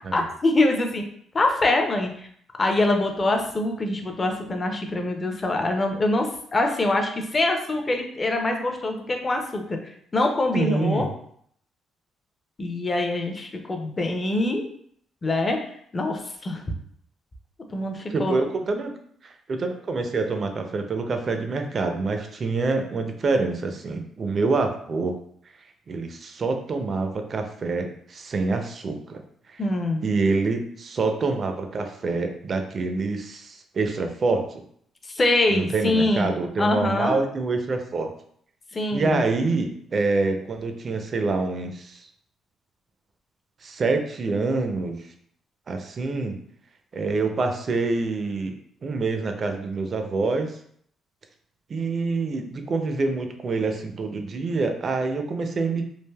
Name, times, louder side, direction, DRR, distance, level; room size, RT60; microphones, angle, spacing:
voice 1, 0.1-1.0 1.3-2.1 2.6-9.8 10.1-11.1 12.6-14.7 15.2-15.6 15.9-16.6 17.7-18.4 29.6-30.0 35.1-36.3 36.6-37.1 38.7-39.2, left 2 dB, 25° left, 4 dB, 0.4 m, -24 dB
voice 2, 10.5-11.1 18.1-18.9 19.2-25.1 25.9-29.2 29.5-29.6 30.0-34.6 35.5-38.1 38.9-42.1 43.6-45.1 45.7-46.4 46.9-50.6 51.7-55.8, right 3 dB, 40° right, 6 dB, 0.4 m, -26 dB
3.2 x 2.4 x 2.2 m, 0.64 s
cardioid pair, 115°, 0 cm